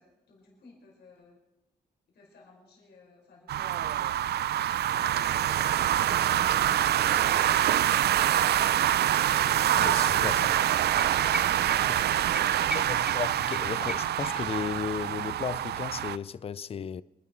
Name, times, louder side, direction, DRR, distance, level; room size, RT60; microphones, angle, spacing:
voice 1, 0.0-1.4 2.1-4.2 4.9-7.6 11.8-13.1, left 3 dB, 85° left, 5.2 m, -56 dB
sound 1, 3.5-16.2, right 11 dB, 80° right, 0.5 m, -25 dB
sound 2, 8.5-15.1, left 3 dB, 60° left, 5.5 m, -51 dB
voice 2, 9.8-10.5 11.9-12.0 12.7-17.0, left 7 dB, 35° left, 0.4 m, -35 dB
sound 3, 13.0-14.7 15.0-15.1, equal, 5° right, 0.9 m, -40 dB
26.5 x 11.0 x 4.4 m
cardioid pair, 110°, 17 cm